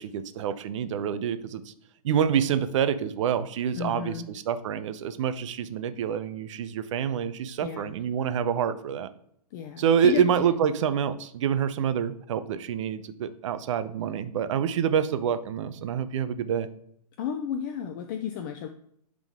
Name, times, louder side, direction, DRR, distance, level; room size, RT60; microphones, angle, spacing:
voice 1, 0.0-1.7 2.0-9.1 9.8-16.7, right 8 dB, 50° right, 12 dB, 0.7 m, -27 dB
voice 2, 3.7-4.3 7.6-8.0 9.5-10.5 17.2-18.7, left 8 dB, 30° left, 7 dB, 0.4 m, -33 dB
10.5 x 3.8 x 3.6 m, 0.70 s
hypercardioid pair, 145°, 21 cm